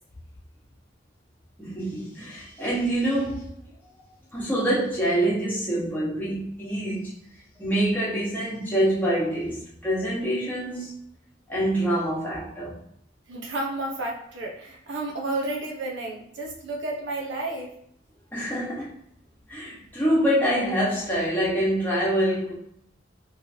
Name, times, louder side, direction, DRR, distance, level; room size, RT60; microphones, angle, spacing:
voice 1, 1.6-3.5 4.3-7.2 7.6-10.9 11.5-12.8 18.3-18.9 19.5-22.5, right 1 dB, 10° left, 1.2 m, -25 dB
voice 2, 13.3-17.8, right 2 dB, 65° right, 0.7 m, -31 dB
3.1 x 3.0 x 2.8 m
head